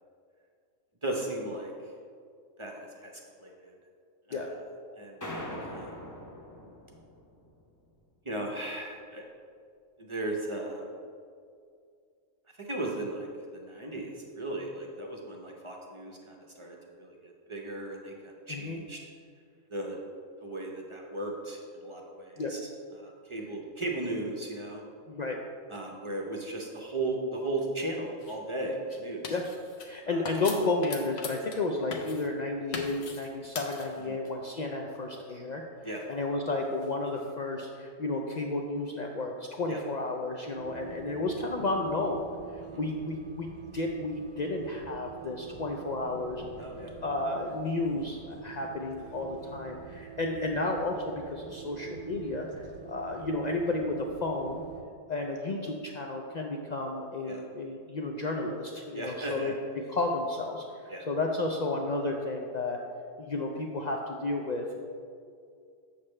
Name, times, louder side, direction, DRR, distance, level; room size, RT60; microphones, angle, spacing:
voice 1, 1.0-1.7 2.6-3.1 3.4-3.7 4.3-4.5 5.0-6.1 8.2-9.2 10.0-10.9 12.6-19.0 19.7-20.0 20.4-22.6 23.0-24.8 25.7-29.2 30.0-30.2 34.1-34.2 35.8-36.0 39.7-39.8 42.6-42.8 46.6-46.9 57.2-57.4 58.9-59.5 60.9-61.1, right 2 dB, 30° right, 0 dB, 0.6 m, -36 dB
sound 1, 5.2-7.6, left 1 dB, 20° left, 0.6 m, -41 dB
voice 2, 25.1-25.4 29.3-29.4 29.8-42.3 42.5-46.4 47.0-54.6 55.1-62.8 63.2-64.8, left 2 dB, 80° left, 1 dB, 0.3 m, -32 dB
sound 2, 28.2-28.4 28.9-29.9 30.3-31.7 31.9-32.3 32.7-33.3 33.6-34.3 35.9-37.3, left 4 dB, 60° left, 1.0 m, -41 dB
sound 3, 40.5-54.8, right 7 dB, 80° right, 1.0 m, -46 dB
7.3 x 6.7 x 3.2 m, 2.3 s
omnidirectional pair, 1.4 m